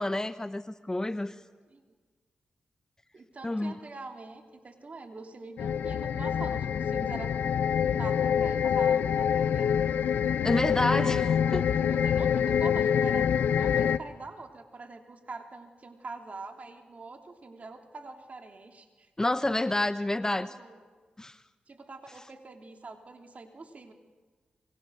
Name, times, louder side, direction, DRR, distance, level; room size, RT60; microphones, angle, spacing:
voice 1, 0.0-1.3 3.4-3.7 10.4-11.3 11.5-11.6 19.2-20.5 21.2-21.4, left 1 dB, 20° left, 12 dB, 1.0 m, -28 dB
voice 2, 3.1-7.3 7.9-9.7 10.5-13.3 13.5-19.1 20.4-20.8 21.7-23.9, right 3 dB, 50° right, 4 dB, 3.3 m, -44 dB
sound 1, 5.6-14.0, left 8 dB, 85° left, 0.7 m, -26 dB
26.5 x 23.0 x 6.6 m, 1.4 s
cardioid pair, 50°, 3 cm